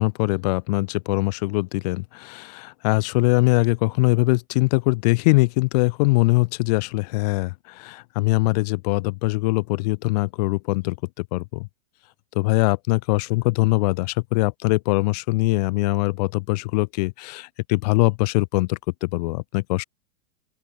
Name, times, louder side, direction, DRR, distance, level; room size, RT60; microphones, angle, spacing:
voice 1, 0.0-11.0 11.3-11.7 12.3-19.8, left 24 dB, 30° left, 0.5 m, -22 dB
open air
supercardioid pair, 155°, 45 cm